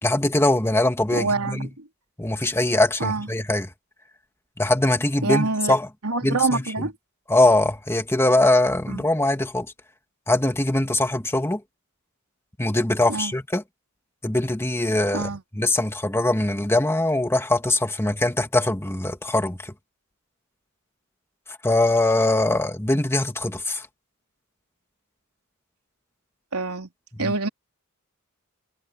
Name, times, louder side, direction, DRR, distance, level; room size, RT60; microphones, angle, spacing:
voice 1, 0.0-1.7 2.2-3.7 4.6-5.9 6.2-6.6 7.3-9.7 10.3-11.6 12.6-13.6 14.2-19.7 21.6-23.9 27.1-27.3, left 1 dB, 10° left, 1.7 m, -22 dB
voice 2, 1.1-1.8 3.0-3.3 5.2-5.8 6.0-6.9 8.9-9.0 13.1-13.3 15.1-15.4 26.5-26.9 27.2-27.5, right 3 dB, 90° right, 3.6 m, -25 dB
head